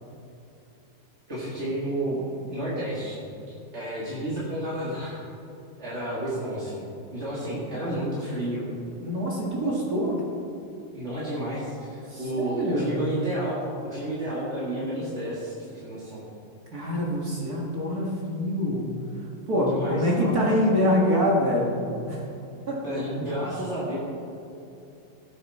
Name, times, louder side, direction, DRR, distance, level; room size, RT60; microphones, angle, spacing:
voice 1, 1.3-3.2 3.7-5.2 5.8-6.8 7.1-8.7 10.9-16.2 19.7-20.3 22.8-24.0, right 1 dB, 30° right, -7 dB, 1.4 m, -31 dB
voice 2, 9.0-10.2 12.1-13.0 16.7-18.9 19.2-21.8 22.1-22.2 22.7-22.8, equal, 45° right, -3 dB, 1.3 m, -25 dB
17.0 x 8.6 x 4.2 m, 2.8 s
omnidirectional pair, 4.2 m